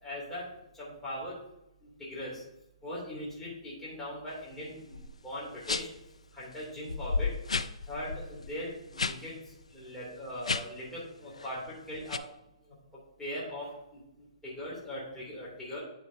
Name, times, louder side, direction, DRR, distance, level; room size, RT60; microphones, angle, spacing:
voice 1, 0.0-0.5 0.7-1.4 1.8-2.4 2.8-5.9 6.3-7.4 7.9-9.4 9.7-12.2 13.2-14.0 14.4-15.8, left 1 dB, 10° left, -7 dB, 2.7 m, -40 dB
sound 1, 4.9-5.1 5.6-6.0 6.5-6.6 6.9-9.2 9.5-9.7 10.3-10.9 11.3-11.6 12.1-12.2, left 4 dB, 80° left, 0.4 m, -33 dB
10.0 x 5.0 x 2.7 m, 0.85 s
figure-of-eight pair, 130°, 3 cm